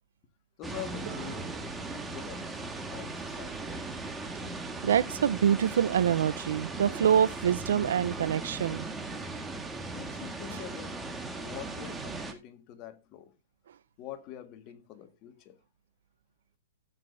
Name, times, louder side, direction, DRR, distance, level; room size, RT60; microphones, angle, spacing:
voice 1, 0.6-1.5 1.9-3.7 9.9-11.0 11.3-13.4 14.0-15.6, left 12 dB, 35° left, 1.7 m, -45 dB
sound 1, 0.6-12.3, right 3 dB, 10° right, 1.7 m, -38 dB
Harp, 1.1-6.8 7.9-8.0, right 12 dB, 55° right, 3.8 m, -54 dB
voice 2, 4.8-8.9, right 9 dB, 75° right, 0.6 m, -25 dB
14.0 x 8.8 x 2.6 m
hypercardioid pair, 150°, 0 cm